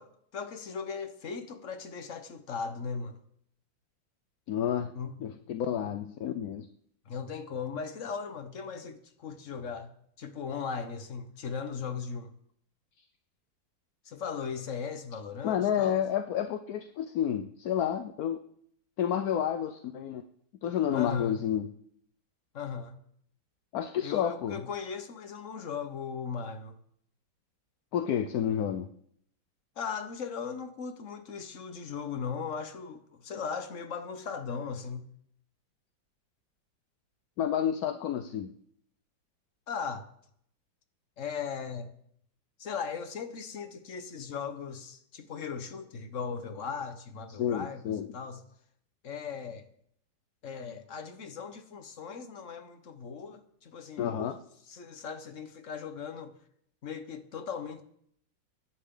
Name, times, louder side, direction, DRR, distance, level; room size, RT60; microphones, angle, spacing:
voice 1, 0.0-3.2 4.9-5.1 7.0-9.9 10.2-12.3 14.0-16.0 20.9-21.4 22.5-23.0 24.0-26.7 29.8-35.1 39.7-40.0 41.2-41.9 42.6-47.8 48.1-48.4 49.0-49.6 50.4-54.4 54.7-56.3 56.8-57.8, left 6 dB, 45° left, 1.4 m, -38 dB
voice 2, 4.5-4.9 5.2-6.7 15.4-18.4 19.0-20.2 20.6-21.7 23.7-24.6 27.9-28.9 37.4-38.5 47.4-48.1 54.0-54.4, left 9 dB, 65° left, 1.0 m, -30 dB
23.0 x 11.0 x 3.9 m
omnidirectional pair, 2.1 m